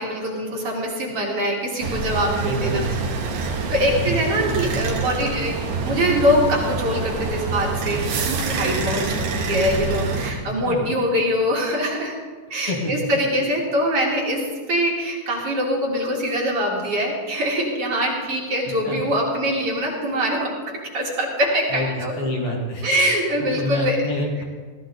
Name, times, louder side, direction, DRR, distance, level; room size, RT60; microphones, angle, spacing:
voice 1, 0.0-2.8 3.7-12.1 12.5-22.1 22.8-24.1, equal, 55° right, -2 dB, 3.0 m, -23 dB
sound 1, 1.8-10.3, right 4 dB, 80° right, 2.8 m, -26 dB
voice 2, 2.4-2.9 3.9-4.2 10.6-10.8 12.7-12.9 18.8-19.0 21.7-22.9 23.4-24.4, left 1 dB, 55° left, -1 dB, 2.6 m, -27 dB
15.5 x 13.5 x 4.0 m, 1.5 s
omnidirectional pair, 3.3 m